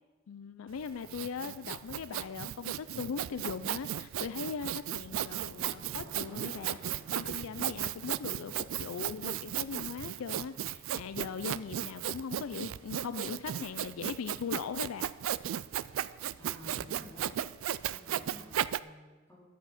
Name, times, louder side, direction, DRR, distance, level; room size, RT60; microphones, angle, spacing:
voice 1, 0.3-15.1, left 6 dB, 75° left, 12 dB, 0.4 m, -40 dB
Sawing, 0.8-18.8, right 11 dB, 70° right, 0.3 m, -35 dB
Motorcycle, 4.8-12.7, equal, 40° right, 3.3 m, -55 dB
voice 2, 16.4-17.4 17.9-19.5, left 1 dB, 10° left, -6 dB, 3.8 m, -52 dB
11.0 x 8.3 x 5.8 m, 1.3 s
head